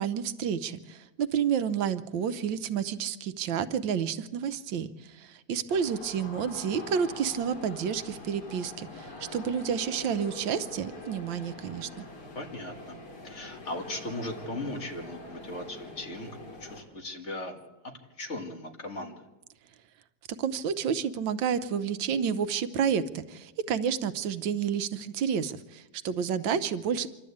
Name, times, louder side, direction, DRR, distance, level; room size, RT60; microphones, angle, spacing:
voice 1, 0.0-12.0 20.4-27.1, right 7 dB, 85° right, 12 dB, 1.6 m, -30 dB
sound 1, 5.7-16.8, left 2 dB, 60° left, 3.6 m, -44 dB
voice 2, 12.4-13.0 13.2-19.2 26.5-26.6, left 1 dB, 40° left, 3 dB, 2.1 m, -38 dB
26.0 x 12.0 x 8.6 m, 1.1 s
omnidirectional pair, 2.0 m